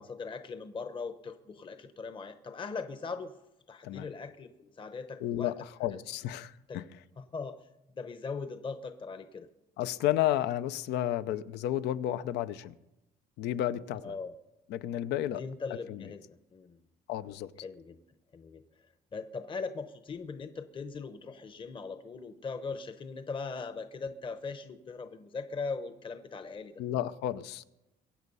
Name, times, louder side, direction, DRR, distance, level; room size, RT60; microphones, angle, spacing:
voice 1, 0.0-3.4 3.7-5.5 5.9-6.0 6.7-6.9 7.2-7.7 7.9-9.5 14.0-14.3 15.3-16.8 17.6-18.0 18.3-18.6 19.1-26.8, left 4 dB, 30° left, 9 dB, 0.9 m, -40 dB
voice 2, 5.2-6.8 9.8-12.7 13.4-14.1 14.7-15.4 15.9-16.0 17.1-17.5 26.8-27.7, left 12 dB, 80° left, 14 dB, 0.7 m, -32 dB
23.0 x 8.3 x 5.5 m, 0.93 s
cardioid pair, 110°, 17 cm